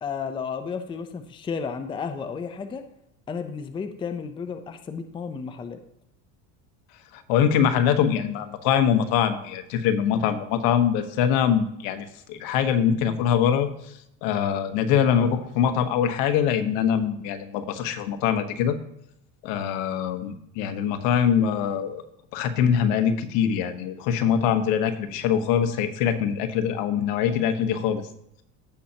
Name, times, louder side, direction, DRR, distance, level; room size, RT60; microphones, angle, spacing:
voice 1, 0.0-2.8 3.3-5.8, left 6 dB, 15° left, 8 dB, 0.5 m, -32 dB
voice 2, 7.1-13.7 14.2-18.8 19.4-22.0 22.3-28.0, left 8 dB, 70° left, 8 dB, 1.2 m, -23 dB
15.5 x 5.6 x 2.9 m, 0.78 s
cardioid pair, 145°, 36 cm